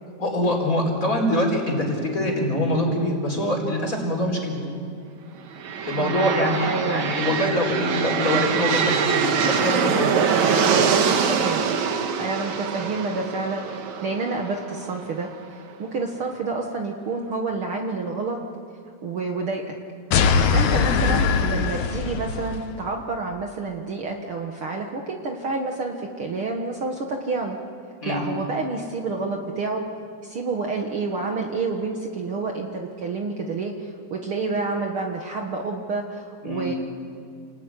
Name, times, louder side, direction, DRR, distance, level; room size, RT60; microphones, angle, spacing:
voice 1, 0.2-4.7 5.9-10.1 20.9-21.2 28.0-28.2 36.4-36.7, left 1 dB, 25° left, 1 dB, 4.7 m, -24 dB
sound 1, 5.5-15.3, right 6 dB, 75° right, 2.8 m, -24 dB
voice 2, 6.0-7.0 10.4-10.6 11.2-11.6 12.2-18.4 19.0-19.6 20.5-27.6 28.1-29.8 30.2-36.7, right 3 dB, 50° right, 2 dB, 2.1 m, -29 dB
sound 2, 20.1-22.7, left 5 dB, 80° left, 2.6 m, -21 dB
29.5 x 19.5 x 9.7 m, 2.5 s
omnidirectional pair, 3.3 m